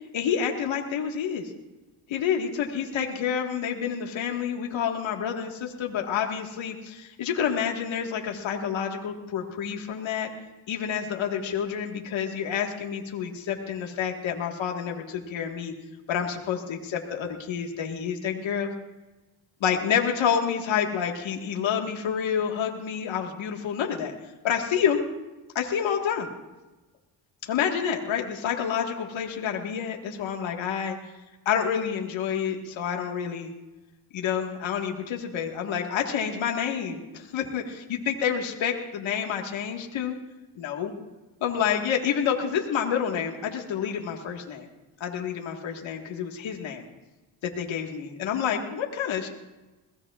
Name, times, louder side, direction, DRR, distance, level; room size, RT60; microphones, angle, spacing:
voice 1, 0.1-1.5 2.1-10.3 10.7-15.7 16.1-18.7 19.6-24.1 24.4-25.0 25.6-26.3 27.4-31.0 31.5-33.5 34.1-40.2 40.6-40.9 41.4-44.7 45.0-46.8 47.4-49.3, left 8 dB, 80° left, 2 dB, 1.7 m, -28 dB
21.5 x 17.0 x 2.4 m, 1.1 s
cardioid pair, 65°, 46 cm